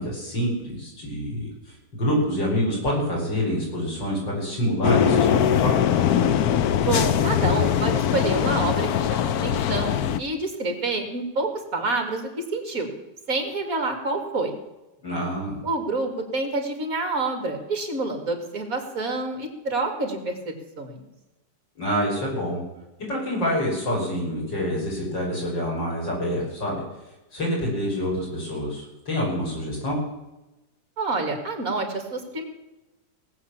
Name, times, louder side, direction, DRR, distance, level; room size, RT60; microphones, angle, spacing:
voice 1, 0.0-5.7 15.0-15.6 21.8-22.6 23.1-26.8 27.3-30.0, equal, 85° left, -3 dB, 6.5 m, -27 dB
sound 1, 4.8-10.2, left 9 dB, 65° left, 1.1 m, -21 dB
voice 2, 6.8-12.9 13.3-14.5 15.6-21.0 31.0-32.4, right 3 dB, 50° right, 4 dB, 2.7 m, -28 dB
18.5 x 8.4 x 7.2 m, 1.0 s
omnidirectional pair, 1.9 m